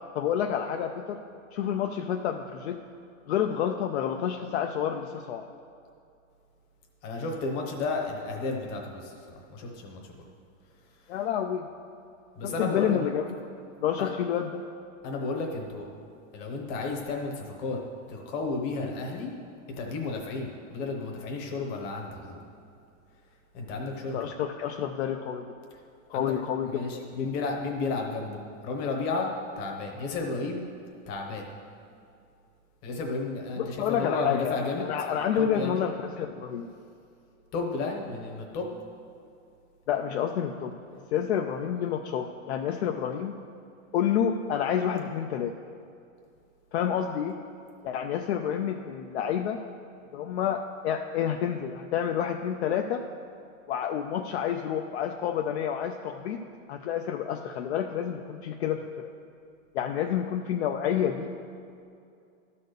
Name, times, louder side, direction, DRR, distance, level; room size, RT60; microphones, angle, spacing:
voice 1, 0.1-1.2 1.5-2.8 3.3-5.5 11.1-11.7 12.4-13.2 13.8-14.6 24.1-25.5 26.1-27.3 33.6-36.7 39.9-43.3 43.9-45.5 46.7-47.4 47.8-49.6 50.1-53.0 53.7-56.4 56.7-59.1 59.7-61.3, left 9 dB, 55° left, 5 dB, 0.5 m, -29 dB
voice 2, 7.0-10.1 12.4-13.0 14.0-14.1 15.0-15.9 16.3-17.8 18.1-19.3 19.7-22.4 23.5-24.2 26.1-26.4 26.7-29.3 29.6-30.6 31.1-31.5 32.8-34.9 35.4-35.8 37.5-38.7, left 3 dB, 25° left, 1 dB, 0.9 m, -32 dB
12.5 x 4.2 x 6.6 m, 2.4 s
supercardioid pair, 175°, 39 cm